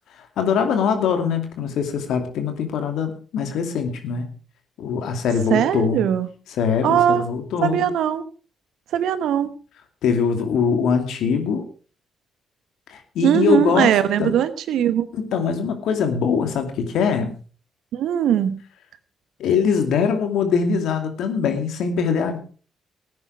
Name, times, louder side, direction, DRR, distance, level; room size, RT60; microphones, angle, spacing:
voice 1, 0.2-4.3 4.8-6.0 6.6-7.9 10.0-11.6 12.9-13.9 14.2-14.3 15.1-17.3 19.4-22.4, left 6 dB, 70° left, 6 dB, 2.5 m, -22 dB
voice 2, 5.5-6.3 6.8-7.2 7.6-8.2 8.9-9.5 13.2-15.1 17.9-18.6, right 9 dB, 70° right, 14 dB, 1.1 m, -20 dB
18.0 x 9.7 x 4.7 m, 0.38 s
hypercardioid pair, 40°, 0 cm